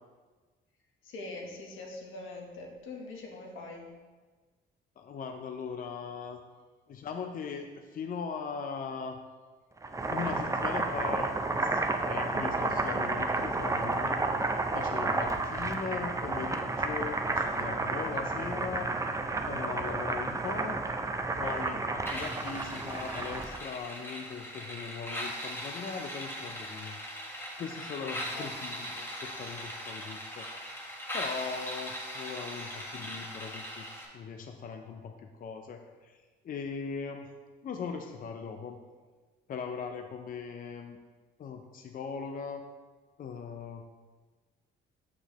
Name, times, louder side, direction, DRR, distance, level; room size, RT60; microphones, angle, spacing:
voice 1, 1.0-3.9 28.3-28.5, left 2 dB, 85° left, 0 dB, 1.2 m, -43 dB
voice 2, 5.0-6.4 6.9-9.2 10.1-11.8 12.1-14.2 14.7-18.9 19.5-20.8 21.4-27.0 27.6-30.5 31.1-37.3 37.6-38.8 39.5-41.0 41.4-42.6 43.2-43.8, left 5 dB, 45° left, 5 dB, 0.5 m, -39 dB
Boiling, 9.8-23.6, right 3 dB, 15° right, 0.5 m, -31 dB
sound 1, 22.1-34.1, equal, 10° left, 1.4 m, -40 dB
6.4 x 6.0 x 3.0 m, 1.4 s
cardioid pair, 90°, 20 cm